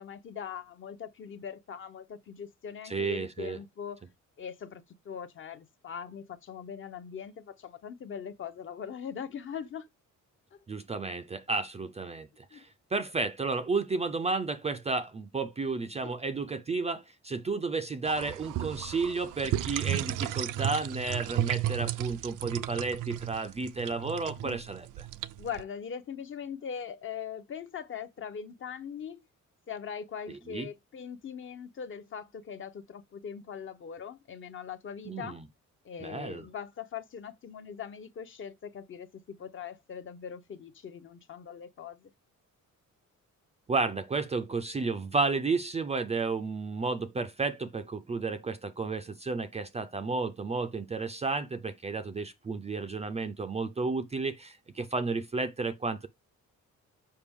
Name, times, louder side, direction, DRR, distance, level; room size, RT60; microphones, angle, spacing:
voice 1, 0.0-4.0 4.4-9.9 12.5-12.6 16.0-16.1 24.4-24.6 25.4-29.2 29.7-35.4 35.8-42.1, left 7 dB, 40° left, 0.7 m, -41 dB
voice 2, 2.8-3.6 10.7-25.1 30.3-30.7 35.1-35.4 36.0-36.4 43.7-56.1, right 3 dB, 20° right, 0.4 m, -32 dB
sound 1, 18.1-25.6, right 12 dB, 80° right, 0.5 m, -34 dB
6.7 x 5.2 x 3.6 m
cardioid pair, 180°, 31 cm